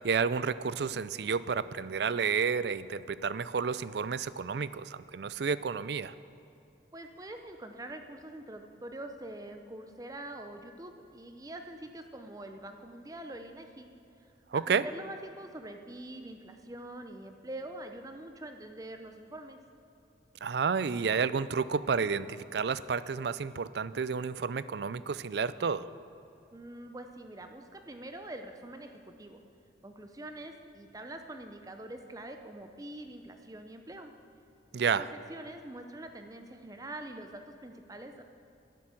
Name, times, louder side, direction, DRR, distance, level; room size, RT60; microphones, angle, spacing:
voice 1, 0.0-6.1 14.5-14.8 20.4-25.9 34.7-35.0, right 5 dB, 60° right, 16 dB, 0.4 m, -31 dB
voice 2, 6.9-13.9 14.2-19.6 26.5-29.4 29.8-34.1 35.0-38.2, right 1 dB, 20° right, 6 dB, 0.6 m, -44 dB
11.5 x 10.5 x 7.5 m, 2.8 s
head